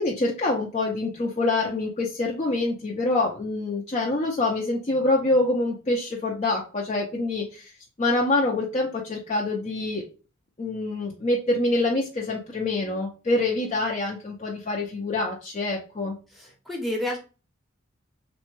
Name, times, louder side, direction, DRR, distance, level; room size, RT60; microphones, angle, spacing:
voice 1, 0.0-7.7 8.0-10.0 10.6-16.2, left 2 dB, 35° left, -3 dB, 0.5 m, -26 dB
voice 2, 16.4-17.2, left 1 dB, ahead, -1 dB, 0.7 m, -30 dB
3.3 x 2.1 x 3.0 m, 0.33 s
head